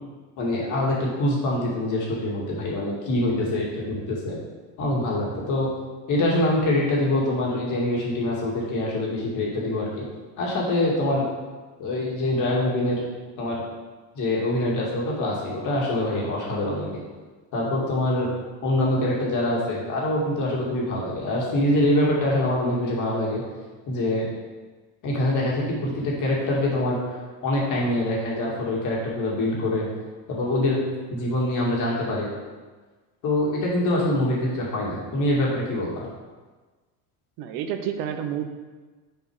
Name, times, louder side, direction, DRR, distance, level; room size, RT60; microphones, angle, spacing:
voice 1, 0.4-4.4 4.8-5.7 6.1-10.1 10.4-11.2 11.8-13.0 13.4-13.6 14.1-17.0 17.5-18.3 18.6-23.4 23.9-24.3 25.0-27.0 27.4-29.9 30.3-30.8 31.1-32.3 33.2-36.1, left 1 dB, 45° left, -4 dB, 2.1 m, -24 dB
voice 2, 37.4-38.4, right 9 dB, 65° right, 7 dB, 0.9 m, -29 dB
6.1 x 4.9 x 4.8 m, 1.3 s
cardioid pair, 135°, 42 cm